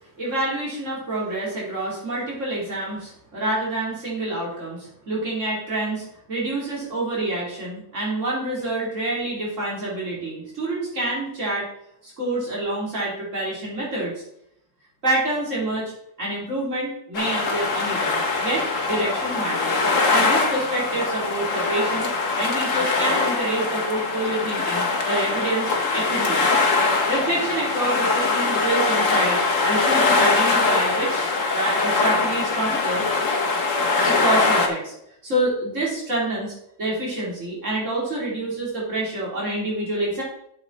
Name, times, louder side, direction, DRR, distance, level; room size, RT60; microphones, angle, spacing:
voice 1, 0.2-11.7 12.0-14.2 15.0-15.9 16.2-26.5 27.1-33.0 34.0-34.9 35.2-40.2, right 1 dB, 70° right, -5 dB, 4.0 m, -27 dB
sound 1, 17.1-34.7, left 3 dB, 80° left, 1.7 m, -22 dB
8.2 x 7.4 x 4.1 m, 0.76 s
omnidirectional pair, 1.3 m